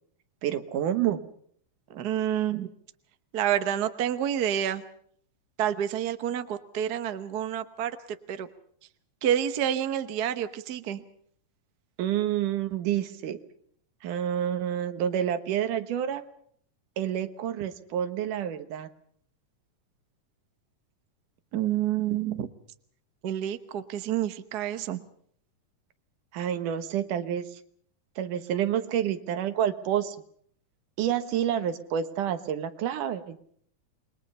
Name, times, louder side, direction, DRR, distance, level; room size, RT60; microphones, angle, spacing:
voice 1, 0.4-1.2 12.0-13.4 14.0-16.2 17.0-18.9 26.3-27.5 28.2-30.2 31.0-33.4, right 10 dB, 85° right, 9 dB, 2.8 m, -28 dB
voice 2, 1.9-2.7 3.3-4.8 5.6-8.0 8.3-8.5 9.2-11.0 21.5-22.5 23.2-25.1, right 10 dB, 65° right, 10 dB, 0.9 m, -28 dB
28.0 x 21.5 x 5.5 m, 0.63 s
omnidirectional pair, 3.6 m